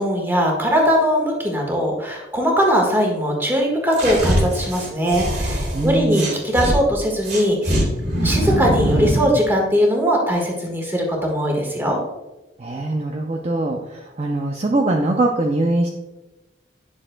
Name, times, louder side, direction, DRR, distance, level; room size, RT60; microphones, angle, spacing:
voice 1, 0.0-7.8 8.2-12.0, equal, 10° right, 0 dB, 1.5 m, -20 dB
sound 1, 3.9-6.8 7.2-9.3, equal, 60° right, 2.3 m, -22 dB
voice 2, 5.7-6.4 12.6-15.9, right 2 dB, 35° right, 1 dB, 0.5 m, -22 dB
10.0 x 6.3 x 2.2 m, 1.0 s
head